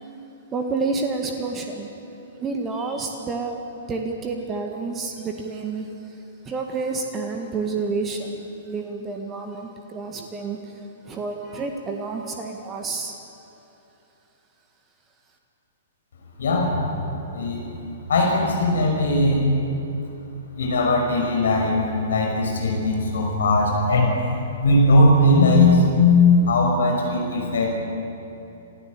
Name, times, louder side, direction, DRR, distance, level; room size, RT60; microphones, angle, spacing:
voice 1, 0.5-1.9 2.4-6.2 6.4-10.7 11.0-13.1, right 4 dB, 20° right, 3 dB, 1.8 m, -29 dB
voice 2, 16.4-17.6 18.1-19.4 20.6-24.1 24.6-27.8, left 2 dB, 60° left, 0 dB, 5.9 m, -19 dB
28.0 x 15.5 x 8.3 m, 2.9 s
figure-of-eight pair, 110°, 0 cm